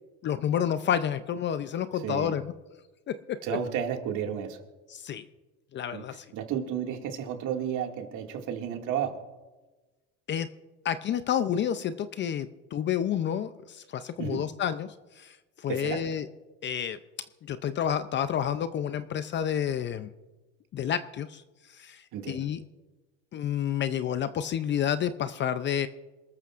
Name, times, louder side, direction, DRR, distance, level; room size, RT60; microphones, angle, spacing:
voice 1, 0.2-2.5 3.1-3.4 4.9-5.2 5.7-6.2 10.3-10.5 10.8-16.3 16.6-17.0 17.4-20.1 20.7-21.4 21.7-22.6 23.3-25.9, left 9 dB, 30° left, 12 dB, 0.5 m, -30 dB
voice 2, 1.9-2.3 3.4-4.6 5.9-6.0 6.3-9.1 14.2-14.4 15.7-16.0 22.1-22.4, right 9 dB, 55° right, 3 dB, 2.2 m, -32 dB
27.0 x 13.5 x 2.5 m, 1.2 s
supercardioid pair, 125°, 37 cm